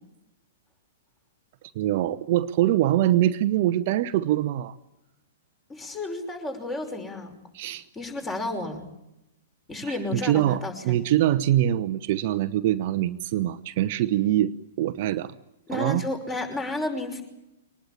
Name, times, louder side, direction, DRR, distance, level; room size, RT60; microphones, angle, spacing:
voice 1, 1.7-4.8 7.5-7.8 9.8-14.5 14.8-15.3 15.7-16.0, right 13 dB, 45° right, 10 dB, 0.9 m, -24 dB
voice 2, 5.7-7.3 7.9-8.8 9.7-11.0 15.7-17.2, left 2 dB, 15° left, 6 dB, 5.7 m, -32 dB
24.5 x 19.5 x 8.7 m, 0.90 s
figure-of-eight pair, 110°, 0 cm